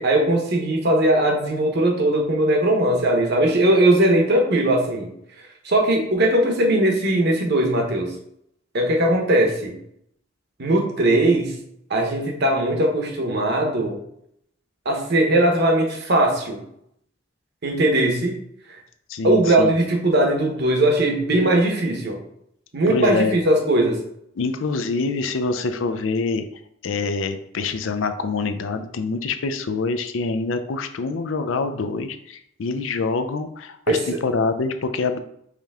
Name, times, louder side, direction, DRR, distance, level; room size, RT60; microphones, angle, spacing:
voice 1, 0.0-5.1 5.6-8.1 8.7-9.8 10.6-11.6 11.9-14.0 14.8-16.6 17.6-18.3 19.2-22.2 22.7-24.0 33.9-34.2, right 1 dB, 60° right, 2 dB, 1.0 m, -19 dB
voice 2, 19.1-19.8 22.9-23.4 24.4-26.4 26.8-35.2, left 4 dB, 85° left, 9 dB, 0.5 m, -25 dB
4.9 x 2.8 x 3.5 m, 0.72 s
head